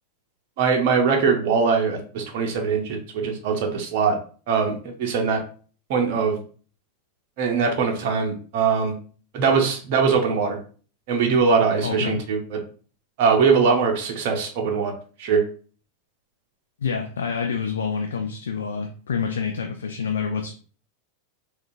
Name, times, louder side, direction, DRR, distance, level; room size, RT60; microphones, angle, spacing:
voice 1, 0.6-4.2 4.5-5.4 5.9-6.4 7.4-8.9 9.3-10.6 11.1-12.6 13.2-14.9 15.2-15.4, right 5 dB, 45° right, 2 dB, 0.6 m, -21 dB
voice 2, 11.8-12.2 16.8-20.5, left 6 dB, 65° left, 4 dB, 0.4 m, -27 dB
3.6 x 2.3 x 2.5 m, 0.41 s
figure-of-eight pair, 90°, 0 cm